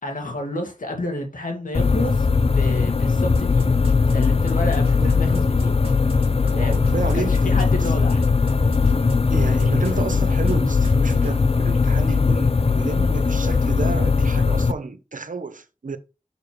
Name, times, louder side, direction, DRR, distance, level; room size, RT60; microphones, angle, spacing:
voice 1, 0.0-2.3 2.5-3.7 4.1-5.7 6.5-8.2 9.6-9.7, left 1 dB, 80° left, 2.2 m, -30 dB
sound 1, 1.7-14.7, left 4 dB, 45° left, 0.5 m, -19 dB
sound 2, 3.3-9.1 9.5-10.2 10.5-10.6 10.8-11.3, right 2 dB, 45° right, 2.1 m, -36 dB
voice 2, 4.8-5.1 6.5-7.5 9.3-16.0, right 4 dB, 70° right, 0.9 m, -31 dB
6.8 x 6.7 x 3.1 m
wide cardioid pair, 70°, 14 cm